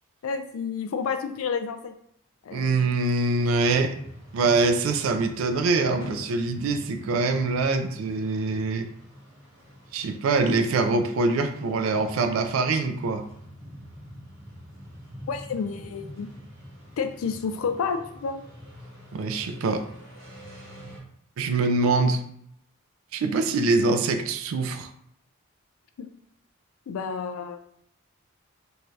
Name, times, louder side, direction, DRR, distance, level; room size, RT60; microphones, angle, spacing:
voice 1, 0.2-1.9 2.4-2.8 15.3-16.3 17.0-18.4 26.0-26.1 26.9-27.6, left 5 dB, 80° left, 8 dB, 0.3 m, -30 dB
voice 2, 2.5-4.0 4.3-8.9 9.9-13.2 19.1-19.9 21.4-22.2 23.1-24.9, right 3 dB, 75° right, 7 dB, 0.3 m, -24 dB
sound 1, 3.2-21.0, equal, 45° right, 1.0 m, -45 dB
2.7 x 2.2 x 3.1 m, 0.70 s
head